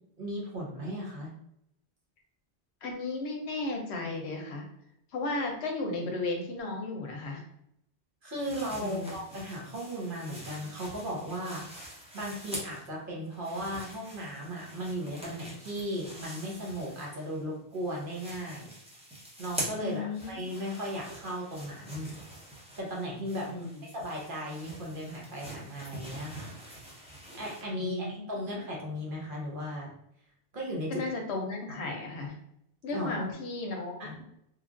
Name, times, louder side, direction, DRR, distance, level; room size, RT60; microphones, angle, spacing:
voice 1, 0.2-1.3 8.2-11.7 12.1-18.7 19.4-22.1 22.8-23.6 23.9-26.5 27.3-29.9 30.5-31.0 31.7-31.8 32.9-33.3 34.0-34.2, equal, 55° right, -3 dB, 0.9 m, -36 dB
voice 2, 2.8-4.6 5.1-7.4 8.8-9.2 19.8-20.5 23.5-23.8 27.7-28.4 30.9-32.4 32.8-34.2, left 2 dB, 75° left, 2 dB, 0.9 m, -35 dB
sound 1, 8.4-12.9 13.2-17.4 17.7-27.6, right 1 dB, 5° right, 0.6 m, -45 dB
3.0 x 2.4 x 2.4 m, 0.76 s
omnidirectional pair, 1.1 m